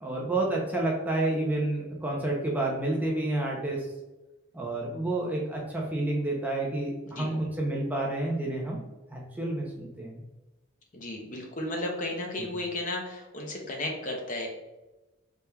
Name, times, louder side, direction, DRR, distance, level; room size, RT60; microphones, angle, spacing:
voice 1, 0.0-3.9 4.5-8.8 9.1-10.2 12.4-12.5, right 2 dB, 10° right, -3 dB, 0.5 m, -29 dB
voice 2, 10.9-14.5, left 1 dB, 40° left, 1 dB, 0.7 m, -34 dB
4.2 x 3.5 x 2.2 m, 1.1 s
head